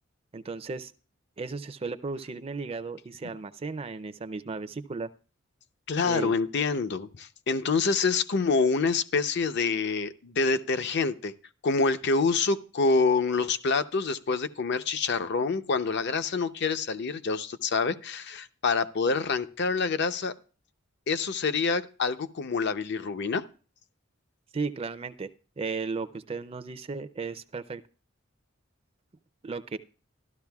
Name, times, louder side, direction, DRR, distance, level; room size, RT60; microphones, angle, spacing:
voice 1, 0.3-0.9 1.4-5.1 6.0-6.3 24.5-25.3 25.6-27.8 29.4-29.8, right 4 dB, 30° right, 13 dB, 0.4 m, -35 dB
voice 2, 5.9-11.3 11.6-20.3 21.1-23.4, left 4 dB, 55° left, 11 dB, 0.7 m, -26 dB
13.0 x 12.5 x 2.3 m, 0.38 s
head